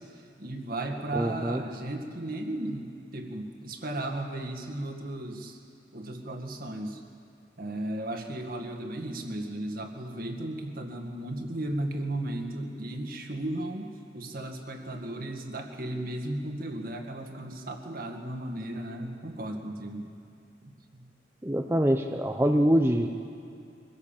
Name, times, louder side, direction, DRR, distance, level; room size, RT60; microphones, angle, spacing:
voice 1, 0.0-5.6 5.9-7.0 7.6-20.1 20.6-21.1, right 1 dB, 50° right, 4 dB, 2.0 m, -35 dB
voice 2, 1.1-1.6 21.4-23.1, equal, 15° right, 3 dB, 0.7 m, -24 dB
24.0 x 17.0 x 7.3 m, 2.5 s
head